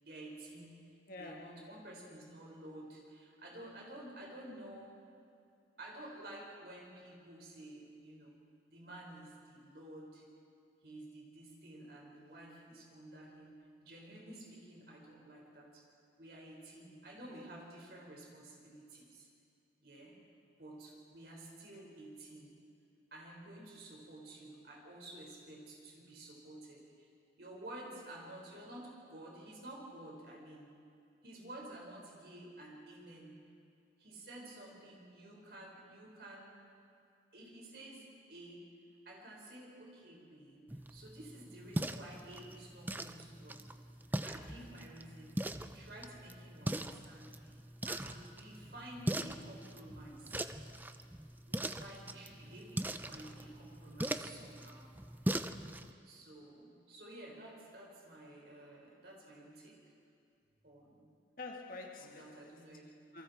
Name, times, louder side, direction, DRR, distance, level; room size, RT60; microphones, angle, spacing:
voice 1, 0.0-0.9 1.2-5.0 5.8-8.4 8.7-10.2 10.8-13.5 13.8-15.8 16.2-19.3 19.8-20.2 20.6-22.5 23.1-27.1 27.4-30.7 31.2-33.3 34.0-36.6 37.3-38.7 39.1-40.6 40.9-43.6 44.2-45.4 45.7-47.6 47.9-50.4 51.4-54.8 56.0-59.9 60.6-61.2 62.0-62.9, right 1 dB, 60° right, 5.4 m, -51 dB
voice 2, 1.1-1.9 21.7-22.2 45.1-45.3 53.4-53.6 61.4-63.2, left 3 dB, 50° left, 1.9 m, -50 dB
sound 1, 40.7-55.9, right 1 dB, 10° right, 0.5 m, -41 dB
28.0 x 23.5 x 4.6 m
head